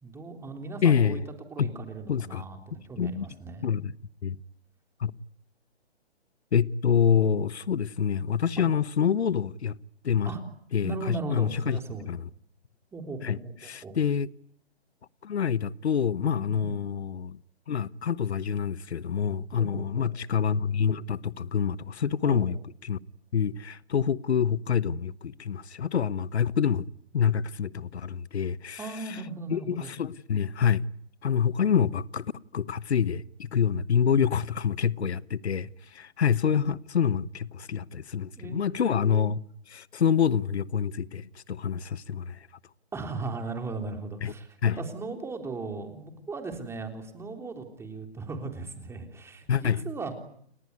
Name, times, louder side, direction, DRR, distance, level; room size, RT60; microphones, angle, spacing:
voice 1, 0.0-1.2 1.5-3.7 8.6-8.7 10.3-10.4 10.8-12.1 12.9-14.0 16.4-16.8 19.5-20.1 22.2-22.5 28.8-29.9 38.4-38.9 42.9-50.1, right 3 dB, 10° right, 3.5 m, -38 dB
voice 2, 0.8-1.2 1.6-1.7 2.1-2.4 3.0-3.3 3.6-3.9 4.2-4.4 5.0-5.1 6.5-9.8 10.0-10.3 10.7-11.8 12.1-12.2 13.2-13.4 13.6-14.3 15.2-17.4 17.7-22.6 22.8-23.0 23.3-26.8 27.1-28.8 29.5-30.8 31.2-32.3 32.5-42.4 44.2-44.3 44.6-44.8 49.5-49.8, left 7 dB, 75° left, 1.1 m, -26 dB
30.0 x 19.5 x 9.6 m
hypercardioid pair, 140°, 33 cm